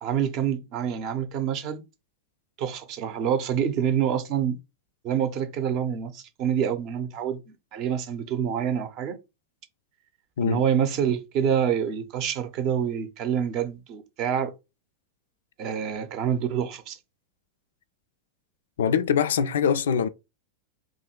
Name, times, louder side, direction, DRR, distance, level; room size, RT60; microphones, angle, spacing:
voice 1, 0.0-1.8 2.6-4.6 5.0-9.2 10.4-14.5 15.6-17.0, right 8 dB, 40° right, 0.6 m, -27 dB
voice 2, 18.8-20.1, left 7 dB, 60° left, 0.3 m, -23 dB
2.9 x 2.6 x 4.2 m
figure-of-eight pair, 90°, 0 cm